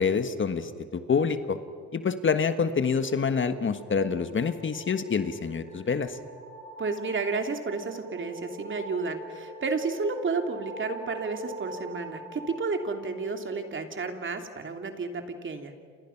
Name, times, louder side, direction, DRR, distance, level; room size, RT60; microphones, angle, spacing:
voice 1, 0.0-1.6 1.9-6.2, left 5 dB, 40° left, 10 dB, 1.5 m, -27 dB
sound 1, 2.6-13.8, right 1 dB, 70° right, 6.1 m, -44 dB
voice 2, 6.8-15.7, right 4 dB, 40° right, 5 dB, 3.1 m, -31 dB
29.5 x 27.5 x 6.0 m, 2.1 s
cardioid pair, 90°, 30 cm